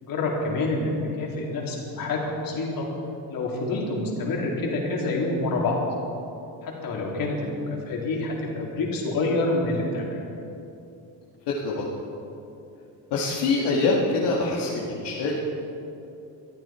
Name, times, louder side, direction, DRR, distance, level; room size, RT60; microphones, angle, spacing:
voice 1, 0.0-0.9 1.2-2.9 3.3-5.8 6.6-10.2, left 2 dB, 55° left, -3 dB, 3.8 m, -27 dB
voice 2, 11.5-11.9 13.1-15.4, left 3 dB, 70° left, -4 dB, 2.2 m, -24 dB
23.5 x 13.5 x 4.5 m, 2.8 s
cardioid pair, 160°, 42 cm